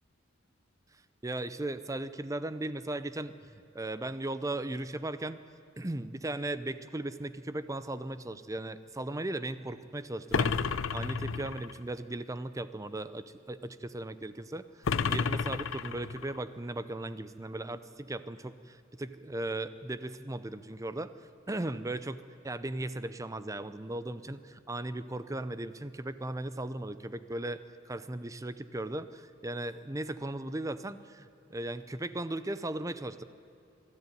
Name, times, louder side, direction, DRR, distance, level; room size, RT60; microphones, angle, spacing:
voice 1, 1.2-3.4 3.7-5.4 5.8-10.5 10.9-21.1 21.5-27.6 27.9-33.2, right 1 dB, 15° right, 13 dB, 0.6 m, -37 dB
sound 1, 10.3-11.8 14.9-16.4, left 5 dB, 90° left, 0.6 m, -31 dB
23.0 x 13.0 x 9.2 m, 2.7 s
head